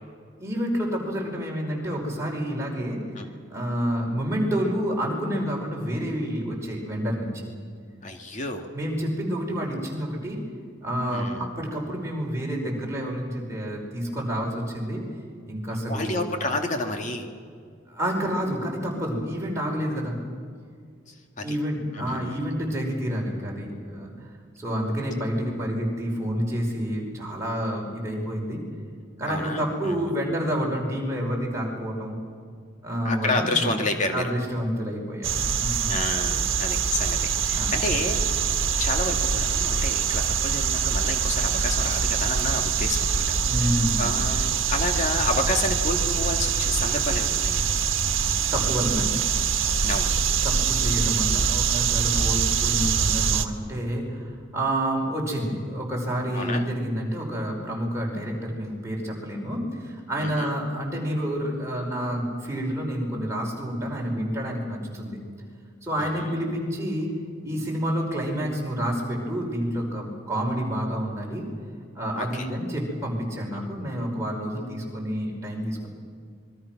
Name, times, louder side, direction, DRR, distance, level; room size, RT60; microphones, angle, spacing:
voice 1, 0.4-3.0 3.5-7.5 8.7-10.4 10.8-15.0 15.5-16.2 17.9-20.2 21.4-24.1 24.6-28.6 29.2-32.2 32.8-33.7 34.1-35.9 37.5-37.7 43.4-44.2 48.5-49.1 50.4-65.2 65.8-67.1 67.4-71.5 71.9-75.9, equal, 15° right, -2 dB, 5.1 m, -29 dB
voice 2, 8.0-8.7 11.1-11.5 15.9-17.3 21.1-21.5 21.9-22.5 29.3-30.1 33.0-34.3 35.9-38.2 38.8-47.7 49.8-50.1 52.1-52.4 56.3-56.6 60.2-60.5 66.0-66.4 72.2-72.5, left 2 dB, 35° left, 4 dB, 2.4 m, -30 dB
sound 1, 35.2-53.5, right 6 dB, 75° right, 1.5 m, -24 dB
27.0 x 22.5 x 6.2 m, 2.1 s
head